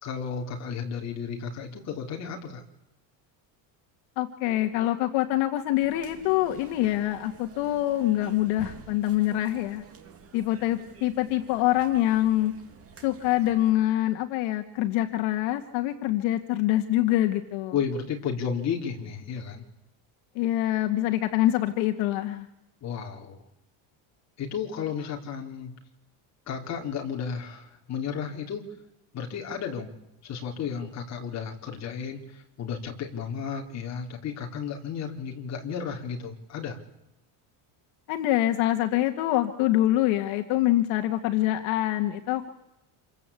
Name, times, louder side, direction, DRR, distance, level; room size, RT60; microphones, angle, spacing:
voice 1, 0.0-2.6 17.7-19.6 22.8-23.4 24.4-25.7 26.5-28.7 29.1-29.9 30.2-36.8, left 7 dB, 30° left, 1 dB, 3.8 m, -33 dB
voice 2, 4.2-9.9 10.3-12.5 13.0-17.7 20.4-22.5 38.1-42.5, left 14 dB, 65° left, 5 dB, 2.0 m, -25 dB
sound 1, 5.8-13.7, right 6 dB, 30° right, 2.3 m, -49 dB
27.5 x 23.0 x 8.5 m, 0.85 s
cardioid pair, 175°, 49 cm